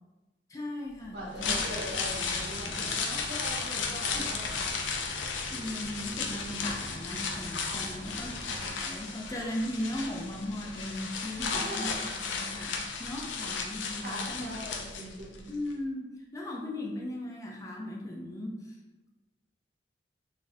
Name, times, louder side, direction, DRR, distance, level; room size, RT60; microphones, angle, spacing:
voice 1, 0.5-1.6 2.6-3.0 4.1-4.2 5.5-14.7 15.5-18.8, left 1 dB, 15° left, -1 dB, 0.3 m, -38 dB
voice 2, 1.1-4.7 7.7-7.9 11.4-12.0 14.0-15.5, equal, 65° right, -5 dB, 0.6 m, -41 dB
sound 1, 1.2-15.4 15.7-15.8, left 5 dB, 90° left, 0.4 m, -34 dB
sound 2, 1.6-8.7, right 1 dB, ahead, 0.7 m, -47 dB
3.9 x 2.4 x 2.6 m, 1.1 s
head